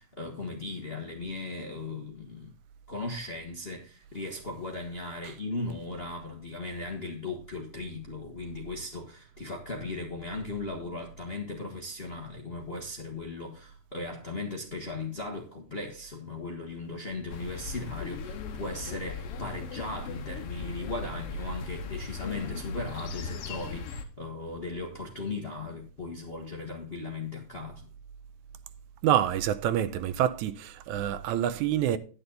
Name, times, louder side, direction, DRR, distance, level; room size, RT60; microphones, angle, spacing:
voice 1, 0.0-2.5 2.9-27.9, left 2 dB, 35° left, 0.9 m, -37 dB
sound 1, 17.3-24.0, left 4 dB, 60° left, 1.8 m, -38 dB
voice 2, 29.0-32.0, right 11 dB, 90° right, 2.1 m, -27 dB
9.7 x 9.7 x 4.0 m
omnidirectional pair, 3.3 m